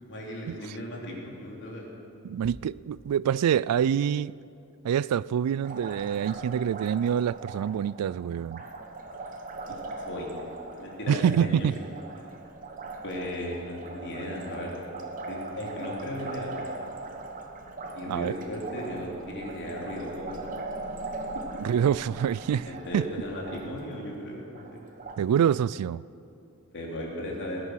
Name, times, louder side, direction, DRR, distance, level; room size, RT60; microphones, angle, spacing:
voice 1, 0.0-1.8 9.7-9.8 10.1-10.3 10.8-11.7 13.0-14.7 15.3-16.6 17.9-20.4 22.6-24.8 26.7-27.6, left 1 dB, 55° left, 3.2 m, -36 dB
voice 2, 2.2-4.3 4.8-8.6 11.1-11.8 18.1-18.3 21.6-22.7 22.9-23.0 25.2-26.0, right 8 dB, 85° right, 0.3 m, -26 dB
Liquid, 5.6-25.2, right 2 dB, 40° right, 1.1 m, -40 dB
19.5 x 9.6 x 6.4 m
head